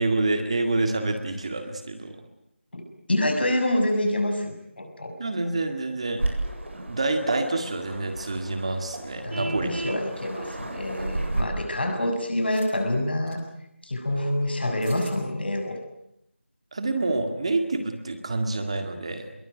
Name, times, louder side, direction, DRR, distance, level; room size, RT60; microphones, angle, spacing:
voice 1, 0.0-2.2 5.2-6.2 6.9-9.7 10.0-10.1 16.7-19.3, right 2 dB, 30° right, 6 dB, 2.0 m, -27 dB
voice 2, 3.1-5.1 9.2-13.4 13.8-15.8, left 1 dB, 55° left, 5 dB, 6.6 m, -27 dB
Waves surf, 6.2-11.4, right 2 dB, 70° right, 7.8 m, -33 dB
Vehicle horn car horn honking, 9.3-10.1, right 2 dB, 85° right, 2.3 m, -34 dB
sound 1, 10.5-10.7 12.4-12.7 13.2-13.4 14.5-14.6 14.8-15.1, right 1 dB, 5° right, 6.9 m, -48 dB
24.0 x 22.5 x 9.3 m, 0.80 s
figure-of-eight pair, 175°, 7 cm